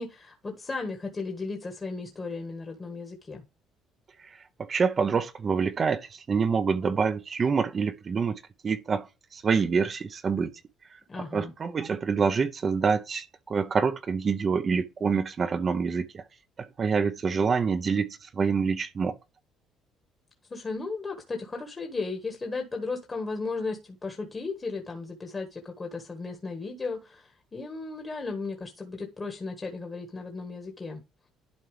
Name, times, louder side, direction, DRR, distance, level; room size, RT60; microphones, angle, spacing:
voice 1, 0.0-3.4 11.1-11.5 20.5-31.0, left 3 dB, 25° left, 1.5 m, -35 dB
voice 2, 4.7-9.1 9.3-10.5 11.2-16.2 16.6-19.1, right 5 dB, 35° right, 0.7 m, -26 dB
11.5 x 4.5 x 3.3 m
cardioid pair, 110°, 0 cm